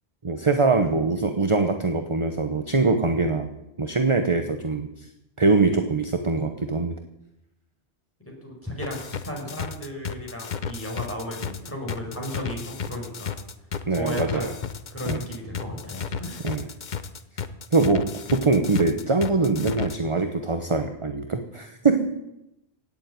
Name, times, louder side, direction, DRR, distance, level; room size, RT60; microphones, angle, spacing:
voice 1, 0.2-3.5 3.8-4.9 5.4-7.0 13.9-14.5 15.1-15.2 16.4-16.7 17.7-22.1, right 3 dB, 30° right, 7 dB, 1.0 m, -23 dB
voice 2, 8.3-13.4 13.9-14.6 14.9-16.5, left 1 dB, 10° left, -1 dB, 5.1 m, -35 dB
sound 1, 8.8-19.9, left 6 dB, 50° left, 0.9 m, -33 dB
17.0 x 7.3 x 9.3 m, 0.88 s
omnidirectional pair, 1.1 m